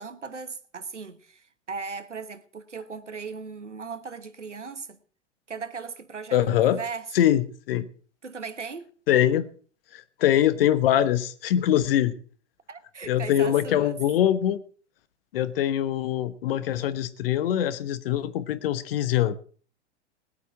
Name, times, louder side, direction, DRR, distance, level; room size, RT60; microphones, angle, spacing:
voice 1, 0.0-5.0 5.5-7.1 8.2-8.9 12.7-14.0, right 5 dB, 85° right, 1.2 m, -37 dB
voice 2, 6.3-6.8 7.1-7.9 9.1-9.5 9.9-12.1 13.1-14.6 15.3-19.4, left 11 dB, 55° left, 1.2 m, -23 dB
20.0 x 8.3 x 4.7 m
figure-of-eight pair, 95°, 35 cm